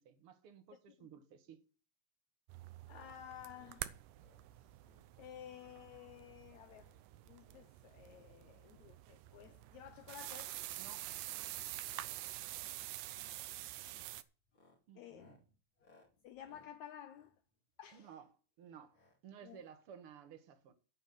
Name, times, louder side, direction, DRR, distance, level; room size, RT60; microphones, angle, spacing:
voice 1, 0.0-1.6 10.8-11.1 14.9-15.4 17.9-18.3 18.6-19.0 19.2-20.7, right 8 dB, 55° right, 1.8 m, -55 dB
sound 1, 2.5-14.2, right 15 dB, 75° right, 2.2 m, -47 dB
voice 2, 2.9-3.9 5.2-6.9 7.2-10.5 15.0-15.3 16.2-17.3 17.8-18.1 19.4-19.6, left 10 dB, 80° left, 1.6 m, -53 dB
sound 2, 2.9-3.2 3.4-3.8 4.2-4.5 4.8-5.1 5.4-5.7 6.0-6.4 6.7-7.0 7.4-8.3 8.7-8.9 9.3-9.6 10.0-10.3 10.7-10.9 11.3-11.6 11.9-12.2 12.5-12.8 13.2-13.4 13.8-14.1 14.4-18.1 18.9-19.2 19.5-19.6 19.7-19.8, left 2 dB, 40° left, 3.0 m, -69 dB
9.2 x 7.8 x 7.7 m
omnidirectional pair, 4.0 m